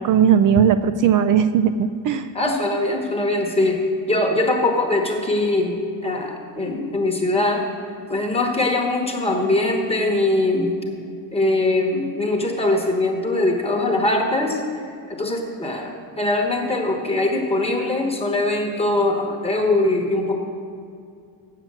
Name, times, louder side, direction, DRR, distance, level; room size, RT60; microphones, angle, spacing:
voice 1, 0.0-2.3, right 8 dB, 50° right, 10 dB, 0.4 m, -17 dB
voice 2, 2.3-5.8 6.0-7.7 8.1-10.7 11.3-20.4, left 2 dB, 15° left, 2 dB, 1.1 m, -22 dB
7.6 x 7.5 x 7.4 m, 2.4 s
cardioid pair, 130°, 42 cm